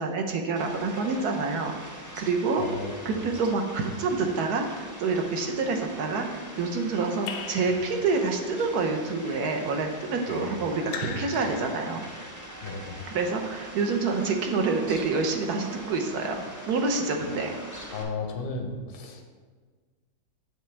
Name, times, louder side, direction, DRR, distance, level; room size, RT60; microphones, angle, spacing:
voice 1, 0.0-1.7 2.2-2.6 3.0-12.1 13.1-16.3 16.7-17.5, right 4 dB, 65° right, 4 dB, 1.1 m, -27 dB
Fowl, 0.6-18.0, equal, 25° right, 0.3 m, -43 dB
voice 2, 2.6-3.2 10.3-10.5 12.6-13.0 17.2-17.4 17.9-19.2, left 3 dB, 50° left, 3 dB, 0.6 m, -35 dB
Raindrop / Drip, 7.3-8.5 10.9-12.2, left 7 dB, 75° left, 1.1 m, -39 dB
7.1 x 6.8 x 3.3 m, 1.5 s
omnidirectional pair, 2.0 m